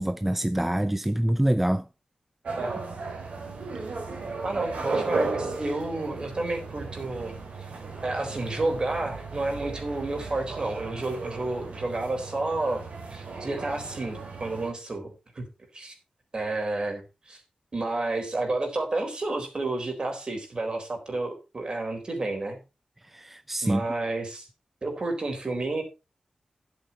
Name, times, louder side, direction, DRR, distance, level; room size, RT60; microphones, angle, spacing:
voice 1, 0.0-1.9 23.0-23.9, right 1 dB, 10° right, 0.4 m, -25 dB
sound 1, 2.4-14.7, right 3 dB, 80° right, 3.7 m, -35 dB
voice 2, 4.4-12.8 13.1-15.5 15.7-15.9 16.3-17.4 17.7-22.6 23.6-24.5 24.8-25.8, right 2 dB, 45° right, 4.0 m, -31 dB
11.0 x 8.3 x 4.3 m
wide cardioid pair, 95°, 2 cm